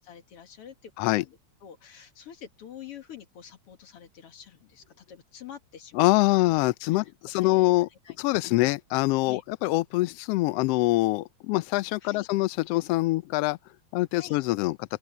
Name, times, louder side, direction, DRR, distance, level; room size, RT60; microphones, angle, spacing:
voice 1, 0.0-6.1 6.9-7.0 7.4-7.7 8.0-8.2 9.3-9.4 12.0-12.3 14.1-14.4, left 9 dB, 55° left, 2.4 m, -47 dB
voice 2, 5.9-7.9 8.2-13.6 13.9-14.8, left 19 dB, 85° left, 1.4 m, -24 dB
open air
omnidirectional pair, 3.4 m